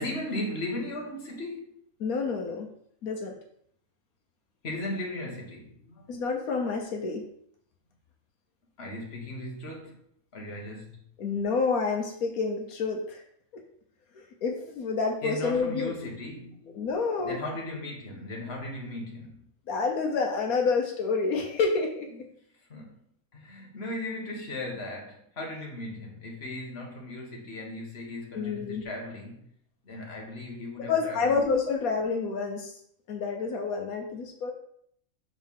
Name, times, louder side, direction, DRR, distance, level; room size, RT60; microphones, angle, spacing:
voice 1, 0.0-1.7 4.6-6.1 8.8-10.0 10.3-11.0 15.2-16.8 17.2-19.5 22.7-23.0 23.3-29.5 29.8-31.4, left 1 dB, 45° left, 1.7 m, -37 dB
voice 2, 2.0-2.7 3.0-3.3 6.1-7.2 11.2-13.2 14.1-15.9 16.7-17.4 19.7-22.1 28.3-28.8 30.9-32.8 33.1-34.5, left 4 dB, 85° left, 1.4 m, -28 dB
6.4 x 4.2 x 5.4 m
omnidirectional pair, 1.5 m